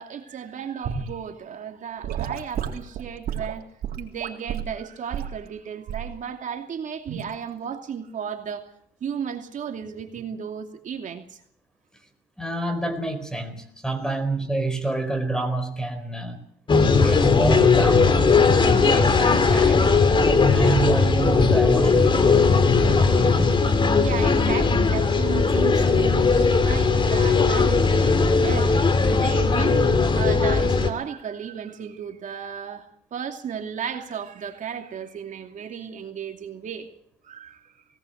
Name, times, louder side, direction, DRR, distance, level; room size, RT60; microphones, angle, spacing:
voice 1, 0.0-3.6 4.0-8.7 9.0-11.4 17.5-17.8 18.6-18.9 20.4-20.7 22.9-23.5 23.9-36.9 37.2-37.7, right 7 dB, 50° right, 2.7 m, -34 dB
Gurgling / Sink (filling or washing) / Liquid, 0.8-1.1 2.0-4.7 5.1-5.4 5.9-6.1 7.1-7.3, right 8 dB, 65° right, 3.7 m, -31 dB
voice 2, 12.4-16.4 17.0-20.0 20.5-22.5, right 2 dB, 5° left, 4.2 m, -28 dB
sound 1, 16.7-30.9, left 4 dB, 30° left, 2.5 m, -18 dB
20.0 x 18.0 x 8.1 m
cardioid pair, 110°, 17 cm